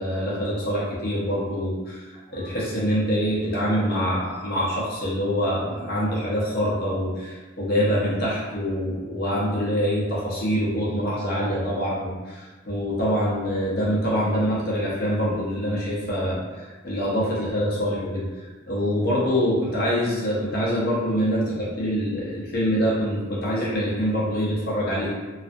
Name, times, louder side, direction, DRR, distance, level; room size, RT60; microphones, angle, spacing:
voice 1, 0.0-18.2 18.7-25.1, equal, 50° left, -6 dB, 0.6 m, -25 dB
2.5 x 2.4 x 2.3 m, 1.3 s
head